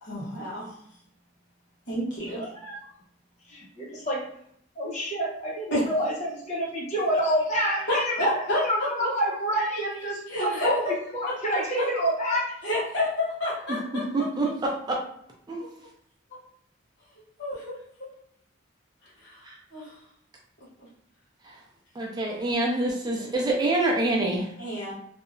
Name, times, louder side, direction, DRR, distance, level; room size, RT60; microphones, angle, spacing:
voice 1, 0.0-0.7 1.9-2.4 5.7-5.9 7.8-9.2 10.3-11.0 11.3-11.9 12.2-12.3 12.6-14.0 15.8-15.9 17.4-18.1 19.0-20.0 24.6-24.9, left 1 dB, 60° left, -6 dB, 1.2 m, -30 dB
voice 2, 2.4-2.8 3.5-4.2 4.8-12.5, equal, 35° left, -4 dB, 0.9 m, -28 dB
voice 3, 13.7-15.0 15.5-15.6 19.5-19.6 21.4-21.6 22.0-24.5, right 2 dB, 20° right, -1 dB, 0.4 m, -26 dB
2.7 x 2.0 x 2.5 m, 0.69 s
head